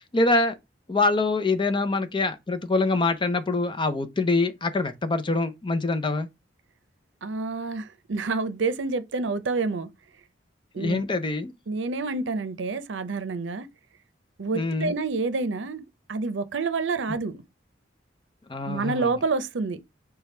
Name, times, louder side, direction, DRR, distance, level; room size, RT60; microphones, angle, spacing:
voice 1, 0.1-0.6 0.9-6.3 10.8-11.5 14.5-14.9 18.5-19.1, left 3 dB, 25° left, 0.6 m, -24 dB
voice 2, 7.2-9.9 10.7-11.0 11.7-13.7 14.4-15.8 16.1-17.4 18.7-19.8, right 4 dB, 80° right, 0.6 m, -28 dB
5.0 x 2.3 x 4.2 m
head